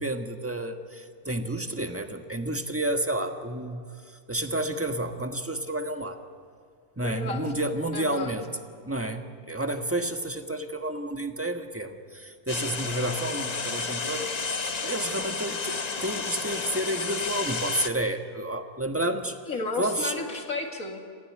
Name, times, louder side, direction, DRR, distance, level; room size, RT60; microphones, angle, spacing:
voice 1, 0.0-6.2 7.0-8.5 8.8-14.3 14.8-19.4 19.8-20.2, right 1 dB, 10° right, 5 dB, 1.3 m, -30 dB
voice 2, 7.0-7.4 7.9-8.4 19.5-21.0, left 3 dB, 70° left, 3 dB, 2.8 m, -32 dB
sound 1, 12.5-17.9, left 4 dB, 35° left, 0.9 m, -31 dB
28.0 x 16.0 x 9.6 m, 2.1 s
omnidirectional pair, 1.5 m